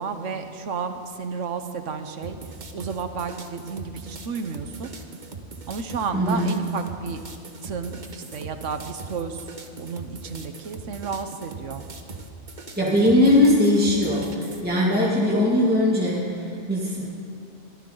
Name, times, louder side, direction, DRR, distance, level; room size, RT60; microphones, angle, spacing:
voice 1, 0.0-2.4 2.7-4.9 5.7-7.2 7.6-9.4 9.8-11.8, right 5 dB, 85° right, 8 dB, 1.3 m, -32 dB
sound 1, 2.2-14.6, right 3 dB, 40° right, 1.2 m, -40 dB
voice 2, 6.1-6.5 12.8-17.1, left 1 dB, 10° right, -7 dB, 2.1 m, -20 dB
23.0 x 14.0 x 3.9 m, 2.6 s
omnidirectional pair, 1.2 m